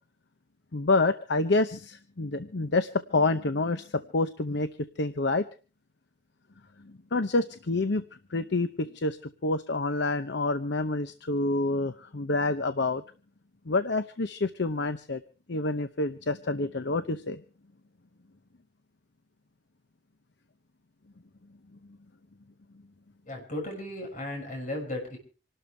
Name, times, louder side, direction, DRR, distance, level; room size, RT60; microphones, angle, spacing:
voice 1, 0.7-4.7 5.0-5.5 6.8-8.0 8.3-9.2 9.4-13.0 13.7-15.2 15.5-17.4, left 2 dB, 60° left, 10 dB, 0.8 m, -27 dB
voice 2, 23.3-25.2, left 1 dB, 45° left, 1 dB, 6.3 m, -35 dB
27.0 x 12.5 x 3.4 m, 0.37 s
head